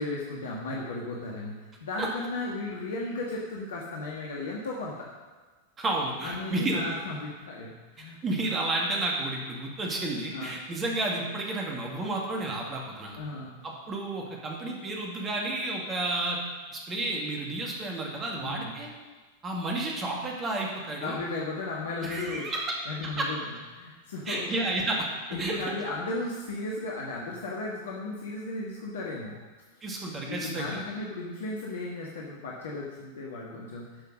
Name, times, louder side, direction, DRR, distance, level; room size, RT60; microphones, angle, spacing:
voice 1, 0.0-1.5 1.8-4.9 6.2-8.2 10.3-10.5 13.2-13.6 18.4-18.7 21.0-22.5 22.9-24.5 25.3-29.4 30.3-34.0, left 2 dB, 60° left, -3 dB, 1.5 m, -35 dB
voice 2, 5.8-6.8 8.0-13.2 13.6-16.4 16.7-18.9 19.4-21.2 22.0-22.7 23.0-23.3 24.3-25.1 25.4-25.7 29.8-30.8, right 2 dB, 20° right, -1 dB, 2.0 m, -31 dB
11.5 x 5.8 x 6.3 m, 1.3 s
figure-of-eight pair, 90°, 0 cm